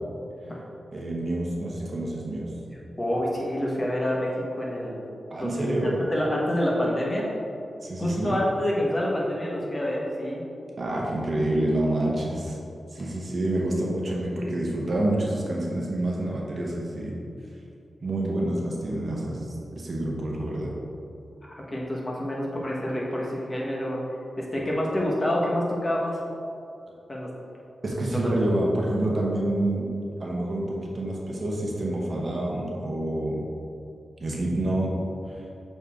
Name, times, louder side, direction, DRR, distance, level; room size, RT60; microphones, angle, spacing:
voice 1, 0.9-2.5 5.3-6.0 7.8-8.3 10.8-12.6 12.9-17.1 18.0-20.7 27.8-29.9 30.2-33.4 34.2-34.9 35.3-35.4, right 1 dB, 55° right, -3 dB, 1.1 m, -27 dB
voice 2, 3.0-5.8 6.1-7.3 8.0-10.4 13.0-13.1 21.4-24.0 24.4-26.2 27.1-27.3 28.2-28.3, left 1 dB, 30° left, -3 dB, 1.3 m, -27 dB
6.8 x 4.3 x 3.6 m, 2.6 s
cardioid pair, 70°, 0 cm